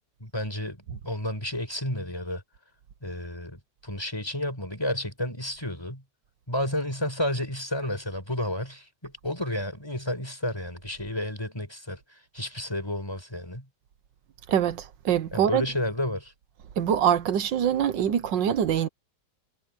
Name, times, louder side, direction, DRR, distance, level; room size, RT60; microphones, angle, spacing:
voice 1, 0.2-2.4 3.0-6.0 6.5-13.7 15.3-16.3, left 1 dB, 15° left, 4.5 m, -31 dB
voice 2, 14.5-15.6 16.8-18.9, right 9 dB, 85° right, 1.7 m, -24 dB
omnidirectional pair, 1.9 m